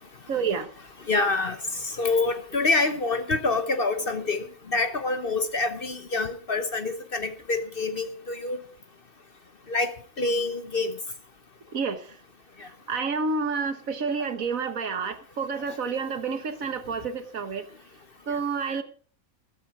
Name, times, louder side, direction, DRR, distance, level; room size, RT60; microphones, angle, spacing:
voice 1, 0.3-0.7 11.7-12.0 12.9-17.7 18.3-18.8, right 5 dB, 65° right, 10 dB, 1.6 m, -29 dB
voice 2, 1.1-8.6 9.7-10.9 12.6-12.7 18.3-18.4, left 3 dB, 40° left, 10 dB, 1.1 m, -27 dB
13.5 x 13.0 x 4.8 m, 0.41 s
omnidirectional pair, 1.6 m